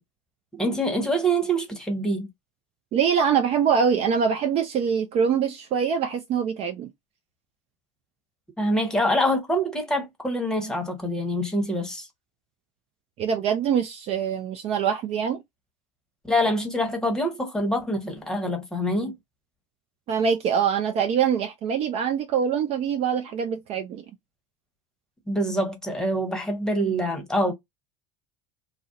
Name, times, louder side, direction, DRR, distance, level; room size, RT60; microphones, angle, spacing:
voice 1, 0.5-2.3 8.6-12.1 16.3-19.1 25.3-27.5, equal, 5° left, 1.0 m, -25 dB
voice 2, 2.9-6.9 13.2-15.4 20.1-24.0, right 7 dB, 40° right, 0.5 m, -24 dB
2.4 x 2.1 x 2.5 m
hypercardioid pair, 75°, 16 cm